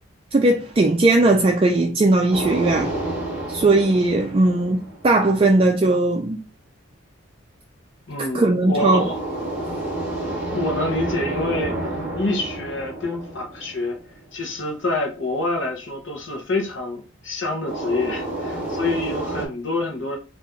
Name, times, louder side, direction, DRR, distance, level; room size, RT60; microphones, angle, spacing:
voice 1, 0.3-2.9 3.5-6.4 8.2-9.0, right 2 dB, 25° right, 0.3 m, -18 dB
sound 1, 2.3-5.4 8.8-14.2 17.6-19.5, right 1 dB, 10° right, 1.7 m, -29 dB
voice 2, 8.1-9.2 10.3-14.0 14.3-20.2, left 2 dB, 60° left, 0.8 m, -27 dB
4.5 x 2.4 x 2.5 m
head